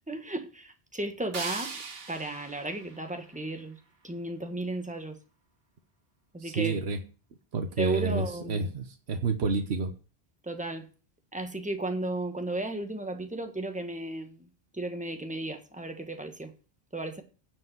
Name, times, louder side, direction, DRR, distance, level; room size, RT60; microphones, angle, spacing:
voice 1, 0.1-1.8 2.1-3.8 4.0-5.2 6.3-6.7 7.8-8.7 10.4-10.9 11.3-16.5 16.9-17.2, right 2 dB, 5° right, 1.4 m, -34 dB
sound 1, 1.3-4.3, right 4 dB, 65° right, 1.4 m, -41 dB
voice 2, 6.4-7.0 7.5-9.9, right 4 dB, 85° right, 1.3 m, -29 dB
9.5 x 5.2 x 7.9 m
omnidirectional pair, 1.1 m